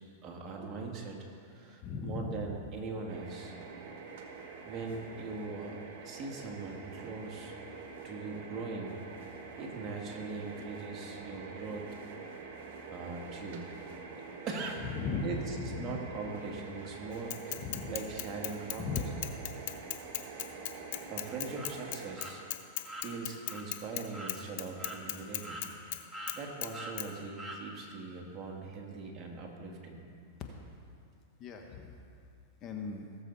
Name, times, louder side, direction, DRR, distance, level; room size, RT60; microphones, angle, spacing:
voice 1, 0.2-1.2 1.5-3.5 4.7-7.5 8.0-8.9 9.6-11.9 12.9-13.6 14.1-14.8 15.2-17.3 17.9-19.0 21.1-22.4 23.0-25.7 26.3-30.0, right 4 dB, 30° right, 0 dB, 2.1 m, -41 dB
voice 2, 1.8-2.5 14.8-16.0 17.6-18.0 18.8-19.0 31.4-32.0 32.6-33.1, left 5 dB, 35° left, 2 dB, 1.3 m, -37 dB
sound 1, 3.1-22.2, right 4 dB, 60° right, 1.6 m, -46 dB
Bicycle / Mechanisms, 17.3-24.0 24.3-26.0 26.3-26.7 27.0-27.1, left 15 dB, 60° left, 0.8 m, -37 dB
sound 2, 21.5-21.7 22.2-22.3 22.8-23.1 23.5-23.6 24.1-24.3 24.8-25.0 25.4-25.9 26.1-26.4 26.7-27.0 27.4-27.6, right 1 dB, 5° right, 1.6 m, -43 dB
18.5 x 7.2 x 4.2 m, 2.4 s
hypercardioid pair, 120°, 0 cm